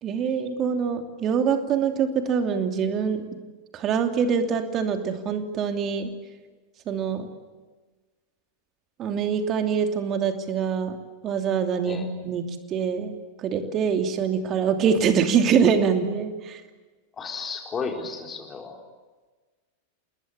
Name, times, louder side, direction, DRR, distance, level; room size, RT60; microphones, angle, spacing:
voice 1, 0.0-3.2 3.7-6.1 6.9-7.3 9.0-11.0 11.2-12.4 12.7-13.1 13.4-16.6, right 6 dB, 30° right, 6 dB, 2.8 m, -24 dB
voice 2, 17.2-18.8, left 5 dB, 20° left, 3 dB, 4.2 m, -33 dB
28.5 x 20.5 x 8.5 m, 1.3 s
figure-of-eight pair, 90°, 0 cm